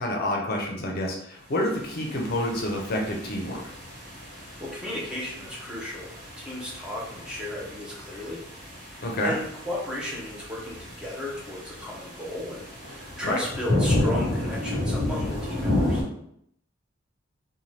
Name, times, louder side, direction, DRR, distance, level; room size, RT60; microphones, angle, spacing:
voice 1, 0.0-3.6 9.0-9.3 13.2-13.4, left 1 dB, 50° left, 0 dB, 0.6 m, -28 dB
sound 1, 1.7-16.0, left 1 dB, 50° right, 1.1 m, -32 dB
voice 2, 4.4-8.4 8.8-16.0, left 1 dB, 5° right, -4 dB, 0.6 m, -35 dB
2.7 x 2.2 x 3.2 m, 0.71 s
head